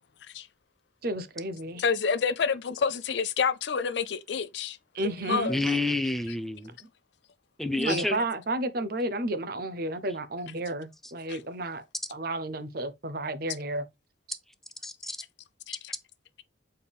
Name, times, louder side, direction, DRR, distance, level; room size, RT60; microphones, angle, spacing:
voice 1, 1.0-1.8 4.9-5.5 7.8-11.8 12.1-13.9 14.3-14.4, right 1 dB, 50° right, 0.8 m, -32 dB
voice 2, 1.8-4.8 5.0-5.8 7.9-8.0 11.3-11.4 15.7-15.9, left 6 dB, 70° left, 0.5 m, -29 dB
voice 3, 5.5-6.7 7.6-8.2 14.8-15.2, left 2 dB, ahead, 0.6 m, -29 dB
7.0 x 4.5 x 3.4 m
head